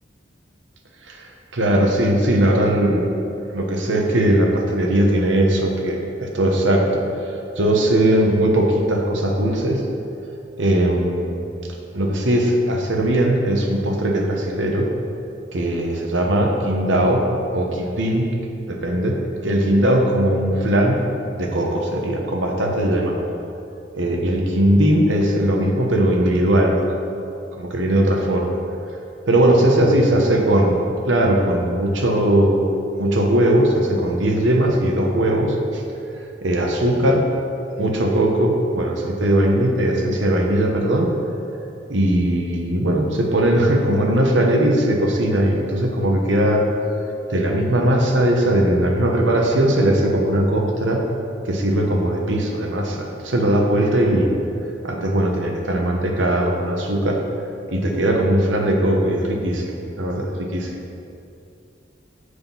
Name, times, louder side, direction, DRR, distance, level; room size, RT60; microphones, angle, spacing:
voice 1, 1.0-3.1 3.5-9.9 10.6-14.9 15.5-17.2 17.5-18.3 18.7-19.2 19.4-21.0 21.4-23.2 23.9-27.2 27.5-28.6 29.3-32.6 33.0-35.8 36.4-37.3 37.8-41.1 41.9-46.7 47.3-51.1 51.4-54.3 54.8-57.2 57.7-60.7, right 1 dB, 80° right, 1 dB, 1.1 m, -19 dB
7.4 x 6.6 x 5.5 m, 2.6 s
head